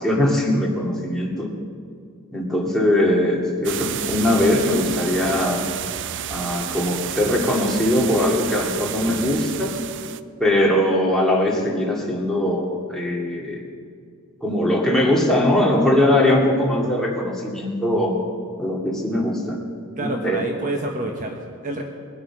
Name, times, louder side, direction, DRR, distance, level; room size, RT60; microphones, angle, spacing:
voice 1, 0.0-1.5 2.3-5.7 6.3-9.7 10.4-13.6 14.4-18.2 18.6-19.6 20.0-20.4 21.0-21.1, left 1 dB, ahead, -3 dB, 2.2 m, -21 dB
sound 1, 3.6-10.2, right 10 dB, 55° right, 0.4 m, -30 dB
voice 2, 20.0-21.8, right 2 dB, 35° right, 2 dB, 1.0 m, -28 dB
21.5 x 7.9 x 6.0 m, 2.2 s
head